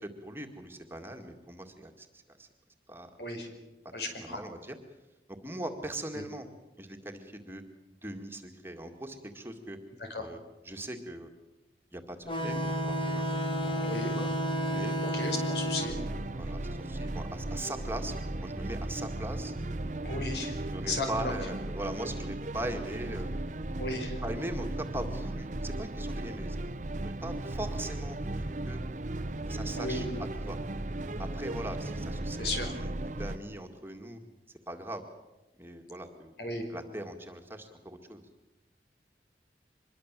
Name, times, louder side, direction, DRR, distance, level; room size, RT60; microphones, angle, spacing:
voice 1, 0.0-2.5 2.9-3.1 4.2-4.8 5.4-6.5 6.8-7.6 8.0-9.8 10.2-10.4 10.7-11.3 11.9-13.2 13.6-14.3 14.7-14.9 16.4-19.5 20.7-23.3 24.2-26.6 27.0-28.8 29.5-30.6 31.2-34.2 34.7-35.1 35.6-36.3 36.7-38.2, right 1 dB, 15° right, 3 dB, 2.0 m, -40 dB
voice 2, 3.9-4.4 6.1-6.2 10.0-10.3 13.8-14.1 15.0-16.0 20.0-20.5 20.9-21.3 23.8-24.2 29.8-30.1 32.4-32.8 36.4-36.7, left 2 dB, 70° left, 5 dB, 5.3 m, -35 dB
sound 1, 12.3-17.4, equal, 30° left, 1.7 m, -32 dB
sound 2, 15.8-33.4, right 1 dB, 45° right, 0.9 m, -36 dB
25.0 x 22.0 x 7.5 m, 1.0 s
head